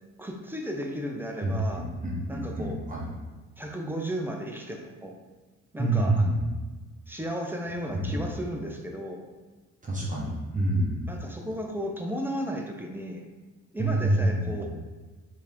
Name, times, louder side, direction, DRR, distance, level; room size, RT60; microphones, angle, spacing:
voice 1, 0.2-1.8 2.3-2.8 3.6-5.1 5.7-6.2 7.1-9.2 11.1-13.2 13.7-14.7, equal, 5° right, 1 dB, 0.6 m, -34 dB
voice 2, 1.4-3.1 5.8-6.5 7.9-8.3 9.8-11.1 13.8-14.7, right 1 dB, 25° right, -5 dB, 1.0 m, -27 dB
4.4 x 2.8 x 3.6 m, 1.3 s
cardioid pair, 90°, 30 cm